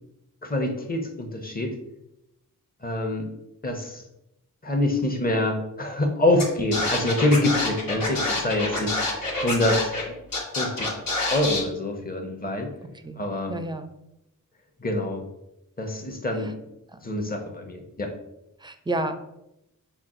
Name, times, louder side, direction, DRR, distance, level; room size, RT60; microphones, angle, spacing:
voice 1, 0.4-1.7 2.8-3.3 3.6-4.0 4.6-10.2 10.5-10.9 11.3-12.7 13.2-13.5 14.8-15.2 15.8-16.6 17.0-18.1, left 1 dB, 25° left, 3 dB, 0.8 m, -26 dB
Scratching (performance technique), 6.4-6.5 6.7-10.0 10.3-11.6, left 2 dB, 75° left, 1.6 m, -27 dB
voice 2, 12.8-13.9 16.4-16.5 16.9-17.0 18.6-19.1, right 2 dB, 15° right, 9 dB, 0.4 m, -32 dB
5.8 x 2.3 x 3.7 m, 0.87 s
wide cardioid pair, 85°, 34 cm